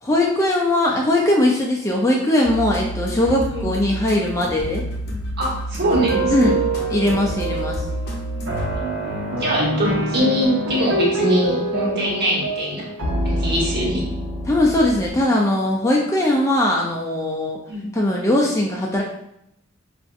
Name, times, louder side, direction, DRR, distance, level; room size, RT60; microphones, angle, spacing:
voice 1, 0.0-4.8 6.3-6.6 6.9-7.8 14.5-17.6 17.9-19.0, left 1 dB, 15° left, -2 dB, 0.4 m, -20 dB
sound 1, 2.4-9.2, equal, 55° left, 0.6 m, -29 dB
voice 2, 5.4-6.5 8.8-9.0 9.4-12.9 13.2-14.1 17.7-17.9, right 1 dB, 50° right, -5 dB, 1.3 m, -23 dB
sound 2, 5.8-15.1, right 1 dB, 70° right, 1.0 m, -25 dB
4.9 x 2.5 x 2.4 m, 0.79 s
head